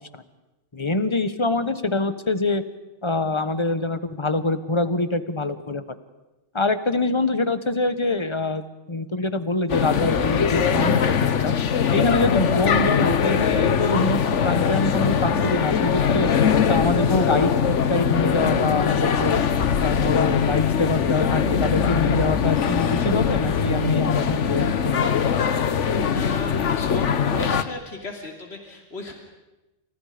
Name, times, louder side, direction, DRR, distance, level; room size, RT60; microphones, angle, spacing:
voice 1, 0.7-2.6 3.0-5.8 6.5-8.6 8.9-11.5 11.9-16.3 16.7-19.4 19.8-25.1, left 2 dB, 25° left, 11 dB, 1.3 m, -25 dB
sound 1, 9.7-27.6, left 7 dB, 80° left, 1.4 m, -21 dB
voice 2, 26.1-29.1, left 2 dB, 60° left, 2 dB, 3.2 m, -36 dB
30.0 x 28.5 x 5.2 m, 1.0 s
omnidirectional pair, 1.2 m